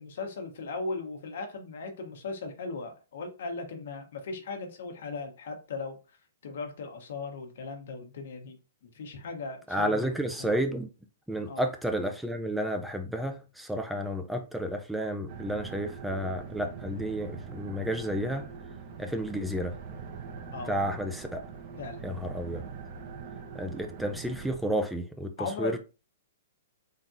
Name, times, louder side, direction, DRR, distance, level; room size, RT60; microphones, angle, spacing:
voice 1, 0.0-6.2 6.4-8.6 8.8-10.1 10.4-10.5 11.5-11.6 20.5-20.7 21.8-22.2 25.4-25.8, left 3 dB, 70° left, 1.2 m, -38 dB
voice 2, 9.7-10.9 11.3-18.5 19.0-19.7 20.7-21.4 22.0-22.6 23.5-25.3 25.6-25.8, equal, 5° right, 0.5 m, -31 dB
sound 1, 15.3-24.5, right 5 dB, 50° right, 1.2 m, -42 dB
3.8 x 3.4 x 2.7 m
hypercardioid pair, 135°, 0 cm